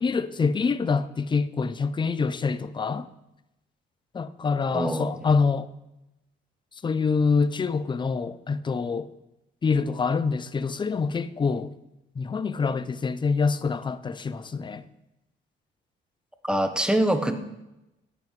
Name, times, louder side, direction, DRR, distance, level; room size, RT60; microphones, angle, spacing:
voice 1, 0.0-3.1 4.1-5.7 6.8-9.1 9.6-11.7 12.2-14.9, left 5 dB, 25° left, 0.4 m, -26 dB
voice 2, 4.7-5.1 16.4-17.3, right 1 dB, 5° right, 0.8 m, -24 dB
8.9 x 7.7 x 3.2 m
cardioid pair, 90°, 20 cm